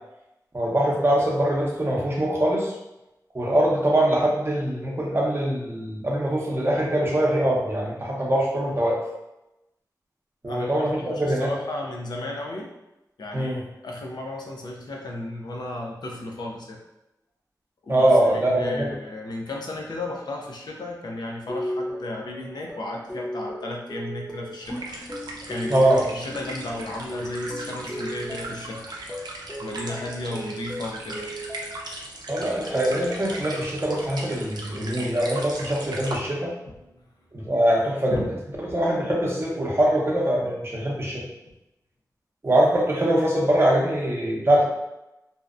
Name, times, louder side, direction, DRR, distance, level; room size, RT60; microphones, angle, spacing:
voice 1, 0.5-2.8 3.3-9.0 10.4-11.5 13.3-13.6 17.9-18.9 25.7-26.0 32.3-36.5 37.3-38.2 38.6-41.2 42.4-44.6, right 1 dB, 35° right, -3 dB, 0.6 m, -23 dB
voice 2, 10.5-12.7 13.2-16.8 17.8-24.8 25.5-28.9 29.6-31.3 36.7-36.8 38.1-38.3, left 2 dB, 90° left, 0 dB, 0.5 m, -34 dB
sound 1, 21.5-31.9 32.3-33.5 33.9-34.4, equal, 10° left, 0.6 m, -36 dB
sound 2, 24.6-36.2, right 2 dB, 80° right, 0.4 m, -38 dB
2.7 x 2.1 x 2.4 m, 0.93 s
wide cardioid pair, 85°, 7 cm